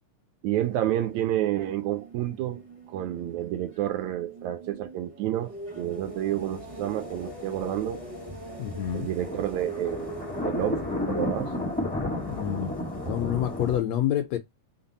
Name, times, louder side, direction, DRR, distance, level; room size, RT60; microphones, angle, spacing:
voice 1, 0.4-2.6 2.9-8.0 8.9-11.6, right 12 dB, 80° right, 1.8 m, -29 dB
sound 1, 0.6-13.2, right 1 dB, 50° right, 0.4 m, -43 dB
sound 2, 6.0-13.8, left 2 dB, 10° left, 0.4 m, -33 dB
voice 2, 8.6-9.1 12.2-12.7 13.1-14.4, left 11 dB, 75° left, 1.7 m, -28 dB
5.8 x 2.0 x 4.0 m
omnidirectional pair, 3.4 m